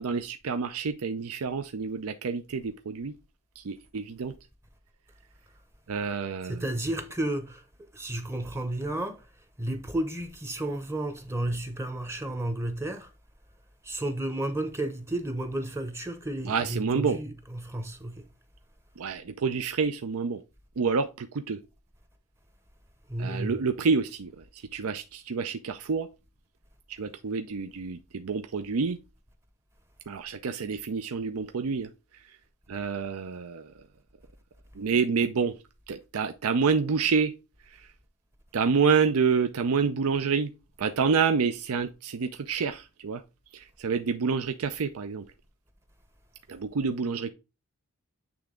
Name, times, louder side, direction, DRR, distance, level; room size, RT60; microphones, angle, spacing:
voice 1, 0.0-3.1 3.6-4.3 5.9-6.6 16.4-17.2 19.0-20.4 20.8-21.6 23.2-26.1 26.9-29.0 30.1-31.9 32.2-32.4 32.7-33.7 34.7-35.6 35.9-37.3 37.7-37.9 38.5-40.5 40.8-43.2 43.5-45.3 46.5-47.3, right 5 dB, 80° right, 0.5 m, -28 dB
voice 2, 6.4-7.6 7.9-9.2 9.6-13.1 13.8-18.3 23.1-23.6, right 1 dB, 10° right, 0.7 m, -32 dB
8.6 x 3.5 x 3.7 m
head